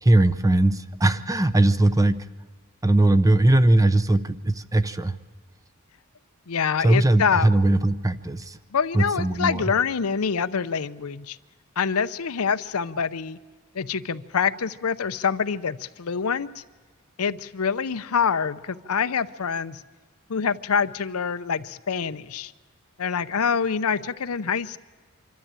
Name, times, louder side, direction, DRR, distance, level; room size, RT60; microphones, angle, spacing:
voice 1, 0.0-2.2 2.8-5.1 6.8-8.6 8.9-9.6, right 1 dB, 15° right, 12 dB, 0.7 m, -20 dB
voice 2, 6.5-7.5 8.7-11.4 11.8-13.4 13.7-16.5 17.2-19.8 20.3-22.5 23.0-24.8, left 6 dB, 80° left, 13 dB, 0.7 m, -26 dB
26.0 x 13.0 x 8.9 m, 1.4 s
head